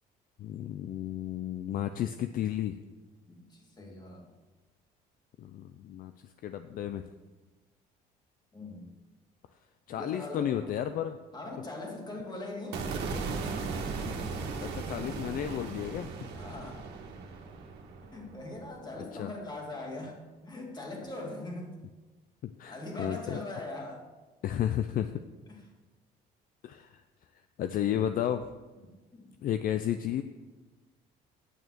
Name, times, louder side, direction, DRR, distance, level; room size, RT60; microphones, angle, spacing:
voice 1, 0.4-2.8 5.4-6.1 6.4-7.0 9.9-11.2 14.0-14.1 14.6-16.1 19.2-19.3 22.4-23.4 24.4-25.2 26.6-27.0 27.6-28.5 29.4-30.2, left 10 dB, 55° left, 9 dB, 0.5 m, -32 dB
voice 2, 3.3-4.3 8.5-8.9 9.9-10.8 11.3-12.9 16.3-16.8 18.1-21.8 22.7-24.1 25.5-25.6 28.8-29.3, left 2 dB, 25° left, 1 dB, 2.3 m, -41 dB
sound 1, 12.7-19.0, right 4 dB, 75° right, 1.6 m, -37 dB
9.1 x 6.7 x 6.1 m, 1.2 s
cardioid pair, 110°, 17 cm